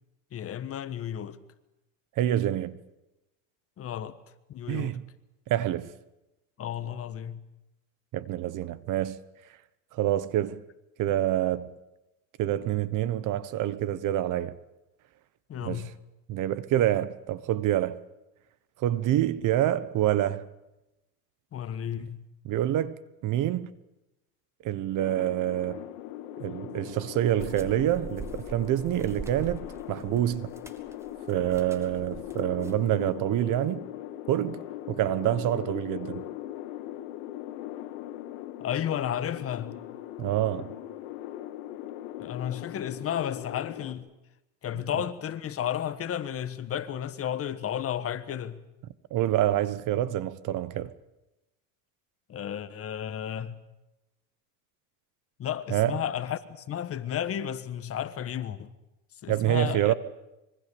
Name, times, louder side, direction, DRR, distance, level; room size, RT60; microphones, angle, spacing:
voice 1, 0.3-1.4 3.8-4.2 4.5-5.0 6.6-7.4 15.5-15.9 21.5-22.2 38.6-39.8 42.2-44.1 44.6-48.6 52.3-53.6 55.4-58.7 59.2-59.9, left 10 dB, 35° left, 1.3 m, -33 dB
voice 2, 2.2-2.8 4.7-5.1 5.5-5.9 8.1-9.2 9.9-10.6 11.0-11.7 12.4-14.6 15.6-15.9 16.3-18.0 18.8-20.5 22.4-23.7 24.6-25.9 26.4-30.5 31.3-33.9 34.3-36.2 40.2-40.7 49.1-50.9 55.7-56.0 59.3-59.9, right 12 dB, 45° right, 1.2 m, -27 dB
sound 1, 25.0-43.9, left 13 dB, 80° left, 2.1 m, -40 dB
sound 2, 27.4-32.9, right 3 dB, 5° right, 2.0 m, -43 dB
25.5 x 23.5 x 7.0 m
supercardioid pair, 125°, 42 cm